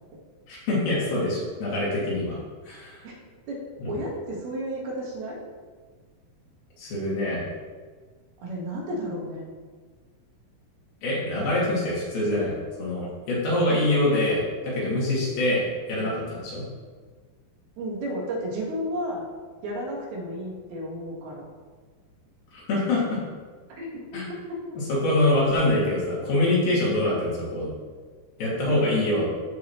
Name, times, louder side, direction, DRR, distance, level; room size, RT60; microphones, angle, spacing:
voice 1, 0.5-2.4 2.7-3.0 3.8-3.9 6.8-7.5 11.0-16.6 22.5-23.2 24.1-24.3 24.9-27.7 28.4-29.3, left 1 dB, 70° left, -6 dB, 4.1 m, -25 dB
voice 2, 3.5-5.4 8.4-9.5 16.0-16.2 17.8-19.2 19.6-21.5 23.8-24.0 24.5-24.6 28.7-28.8, equal, 80° right, -2 dB, 3.5 m, -32 dB
14.0 x 4.8 x 3.1 m, 1.5 s
omnidirectional pair, 4.4 m